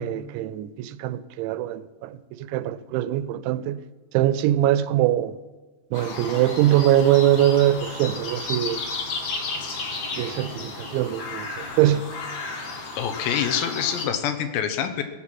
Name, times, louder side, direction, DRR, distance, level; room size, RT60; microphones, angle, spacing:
voice 1, 0.0-3.8 4.1-5.3 5.9-8.8 10.2-12.0, right 12 dB, 85° right, 2.9 m, -22 dB
sound 1, 5.9-14.1, left 3 dB, 50° left, 2.3 m, -33 dB
voice 2, 13.0-15.0, left 9 dB, 80° left, 3.2 m, -26 dB
19.5 x 7.8 x 5.9 m
omnidirectional pair, 5.2 m